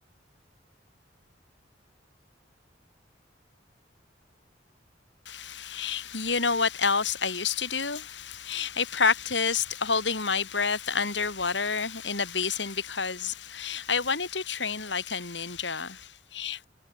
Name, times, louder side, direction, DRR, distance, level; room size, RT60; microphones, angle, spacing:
voice 1, 5.3-16.7, left 5 dB, 80° left, 5.2 m, -29 dB
head